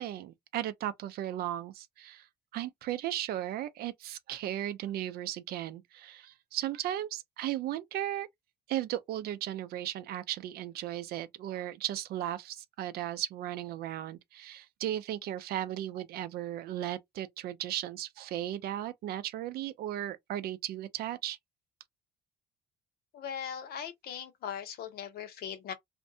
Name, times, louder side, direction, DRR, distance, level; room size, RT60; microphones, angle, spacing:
voice 1, 0.0-2.3 2.5-8.3 8.7-21.4, right 12 dB, 65° right, 0.4 m, -36 dB
voice 2, 23.1-25.7, left 8 dB, 65° left, 0.7 m, -39 dB
2.5 x 2.2 x 2.5 m
cardioid pair, 110°, 17 cm